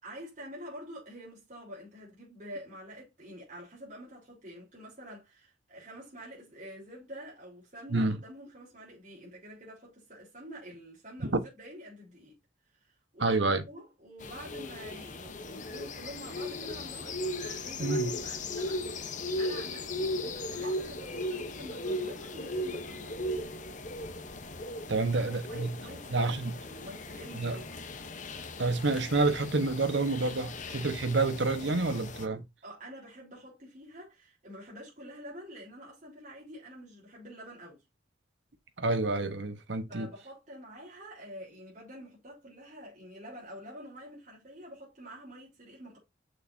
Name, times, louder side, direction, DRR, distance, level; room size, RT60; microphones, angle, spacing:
voice 1, 0.0-12.4 13.1-23.3 25.1-27.8 32.6-37.8 39.9-46.0, equal, 40° right, 3.7 m, -47 dB
voice 2, 13.2-13.6 17.8-18.1 20.6-20.7 24.9-25.7 26.1-26.6 27.3-27.6 28.6-32.4 38.8-40.1, right 3 dB, 70° right, 1.1 m, -28 dB
sound 1, 14.2-32.3, left 1 dB, 40° left, 0.8 m, -37 dB
6.6 x 6.4 x 2.6 m
head